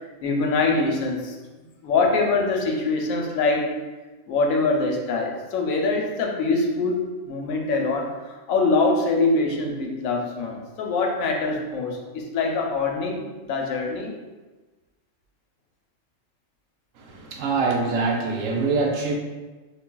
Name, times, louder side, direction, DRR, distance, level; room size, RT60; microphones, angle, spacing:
voice 1, 0.2-1.3 1.8-3.7 4.3-14.1, left 3 dB, 85° left, 1 dB, 1.0 m, -24 dB
voice 2, 16.9-19.2, right 4 dB, 75° right, 0 dB, 1.0 m, -24 dB
4.6 x 2.6 x 2.2 m, 1.2 s
omnidirectional pair, 1.4 m